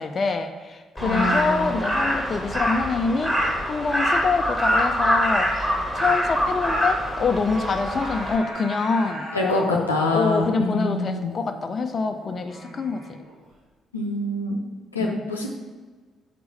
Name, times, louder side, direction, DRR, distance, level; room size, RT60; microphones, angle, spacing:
voice 1, 0.0-9.8 10.1-13.2 15.0-15.1, left 4 dB, 40° left, 6 dB, 0.5 m, -26 dB
voice 2, 1.0-1.8 9.3-9.6 9.9-11.3 13.9-14.6 14.9-15.5, left 2 dB, 90° left, -1 dB, 0.7 m, -25 dB
Crow, 1.0-8.4, equal, 10° right, 1.6 m, -24 dB
Singing, 6.4-13.5, right 1 dB, 70° right, 1.9 m, -39 dB
5.9 x 4.6 x 5.4 m, 1.4 s
figure-of-eight pair, 45°, 0 cm